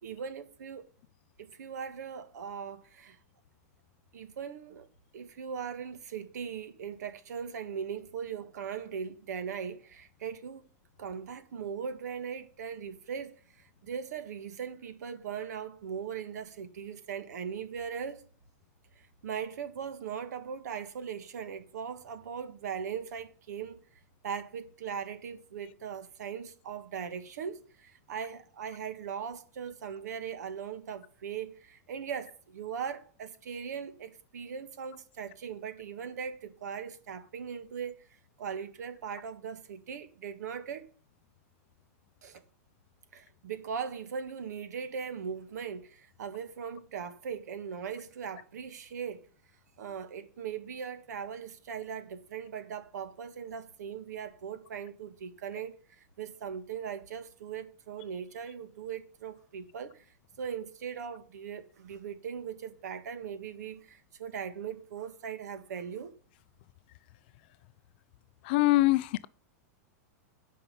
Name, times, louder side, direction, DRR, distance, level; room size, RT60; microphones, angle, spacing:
voice 1, 0.0-0.9 1.4-3.2 4.1-4.9 5.1-10.7 11.0-18.2 19.0-23.8 24.2-38.1 38.4-40.9 42.2-42.4 43.1-49.3 49.8-60.0 60.4-66.1, right 7 dB, 80° right, 1.7 m, -39 dB
voice 2, 68.5-69.2, left 18 dB, 35° left, 0.4 m, -24 dB
11.5 x 5.6 x 7.1 m
supercardioid pair, 175°, 9 cm